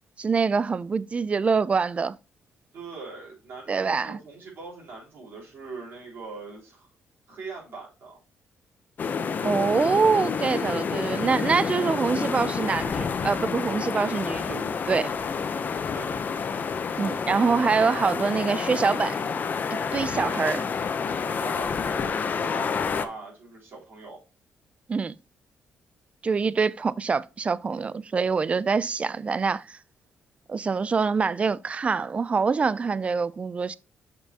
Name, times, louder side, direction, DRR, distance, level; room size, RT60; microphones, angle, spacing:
voice 1, 0.2-2.1 3.7-4.2 9.4-15.1 17.0-19.3 19.7-20.7 24.9-25.1 26.2-29.7 30.5-33.8, right 5 dB, 30° right, 0.4 m, -25 dB
voice 2, 2.7-6.9 7.3-8.2 15.9-16.2 21.3-24.2, right 4 dB, 60° right, 3.8 m, -41 dB
sound 1, 9.0-23.1, left 5 dB, 45° left, 0.7 m, -29 dB
6.7 x 5.6 x 2.8 m
cardioid pair, 105°, 4 cm